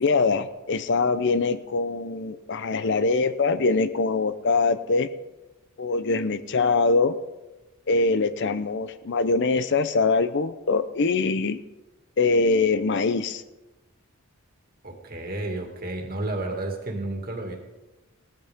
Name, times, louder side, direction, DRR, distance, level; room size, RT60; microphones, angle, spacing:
voice 1, 0.0-5.1 5.8-7.2 7.9-11.6 12.2-13.4, left 3 dB, 55° left, 13 dB, 0.6 m, -23 dB
voice 2, 14.8-17.6, right 2 dB, 45° right, 2 dB, 2.2 m, -31 dB
17.5 x 14.0 x 3.6 m, 1.1 s
head